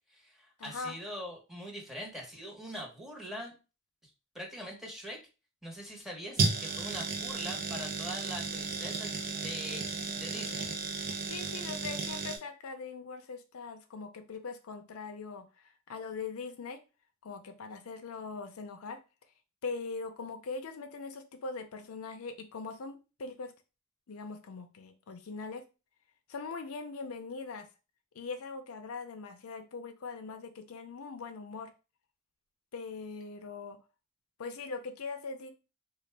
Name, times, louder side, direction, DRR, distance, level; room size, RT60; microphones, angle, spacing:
voice 1, 0.1-3.5 4.3-5.2 5.6-10.7, equal, ahead, 0 dB, 1.0 m, -43 dB
voice 2, 0.6-0.9 11.3-16.8 17.2-19.0 19.6-23.5 24.1-25.6 26.3-27.7 28.1-31.7 32.7-33.8 34.4-35.5, left 4 dB, 75° left, 7 dB, 0.5 m, -41 dB
sound 1, 6.4-12.4, right 4 dB, 45° right, 0.6 m, -34 dB
3.9 x 2.4 x 3.2 m, 0.31 s
head